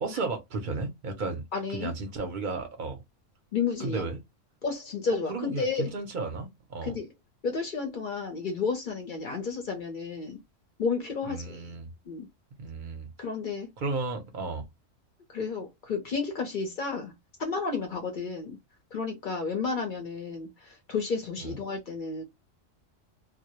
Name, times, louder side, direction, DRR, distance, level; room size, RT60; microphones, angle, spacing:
voice 1, 0.0-1.4 1.7-3.0 3.8-4.2 5.1-7.0 11.3-11.9 12.6-13.1 13.8-14.6 21.4-21.6, right 3 dB, 50° right, 0.6 m, -34 dB
voice 2, 1.5-1.9 3.5-4.0 4.6-5.9 6.8-7.1 7.4-10.4 10.8-11.7 12.1-12.3 13.2-13.7 15.3-17.1 17.4-18.6 18.9-22.2, left 5 dB, 55° left, 0.6 m, -32 dB
2.1 x 2.0 x 2.8 m
omnidirectional pair, 1.3 m